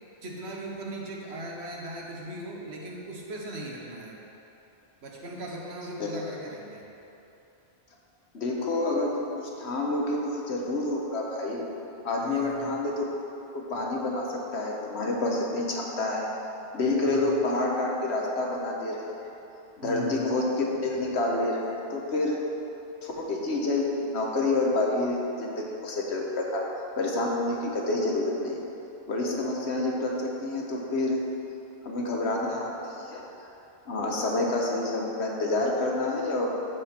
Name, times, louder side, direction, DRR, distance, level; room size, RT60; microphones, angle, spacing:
voice 1, 0.2-4.2 5.0-6.9 12.2-12.7 17.0-17.2 19.8-20.2, right 1 dB, 75° right, -2 dB, 1.4 m, -38 dB
voice 2, 8.3-11.6 12.0-13.0 13.5-16.3 16.7-19.0 19.8-22.4 23.0-26.6 27.0-28.6 29.1-31.2 31.8-32.7 33.0-33.2 33.9-36.5, left 2 dB, 80° left, -1 dB, 1.4 m, -28 dB
13.5 x 4.7 x 4.4 m, 3.0 s
omnidirectional pair, 1.1 m